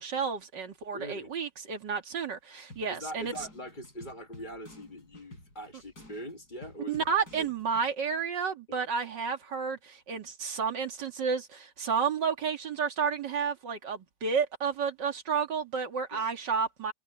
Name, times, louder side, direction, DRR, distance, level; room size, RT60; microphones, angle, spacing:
voice 1, 0.0-3.3 6.9-16.9, right 6 dB, 85° right, 2.7 m, -31 dB
voice 2, 0.9-1.3 2.9-7.5 8.7-8.8 16.1-16.3, equal, 30° left, 1.6 m, -42 dB
sound 1, 2.7-7.9, left 1 dB, 65° left, 8.5 m, -52 dB
omnidirectional pair, 1.8 m